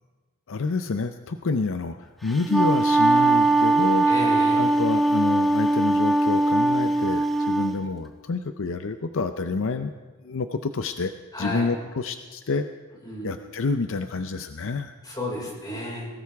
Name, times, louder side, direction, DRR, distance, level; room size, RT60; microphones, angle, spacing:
voice 1, 0.5-4.1 4.6-9.9 10.2-11.1 11.4-12.6 13.2-15.0, left 4 dB, 60° left, 8 dB, 0.6 m, -28 dB
Wind instrument woodwind instrument, 2.3-7.7, right 2 dB, ahead, 1.2 m, -20 dB
voice 2, 4.0-4.6 11.3-11.7 13.0-13.4 15.0-16.1, left 1 dB, 20° left, -4 dB, 5.1 m, -32 dB
20.0 x 18.0 x 3.5 m, 1.4 s
head